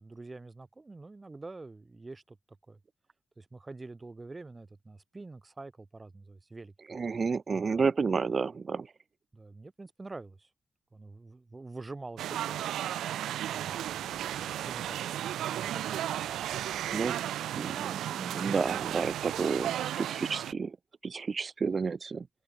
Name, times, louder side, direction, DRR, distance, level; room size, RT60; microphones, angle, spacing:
voice 1, 0.0-2.4 2.7-2.8 3.4-6.7 7.5-7.8 9.3-10.5 10.9-12.6 13.5-16.0 18.4-18.6, right 3 dB, 25° right, 7.6 m, -46 dB
voice 2, 6.9-8.9 16.9-17.1 17.6-20.8 21.0-22.3, right 5 dB, 45° right, 1.1 m, -31 dB
sound 1, 12.2-20.5, right 12 dB, 85° right, 0.9 m, -34 dB
open air
cardioid pair, 70°, 0 cm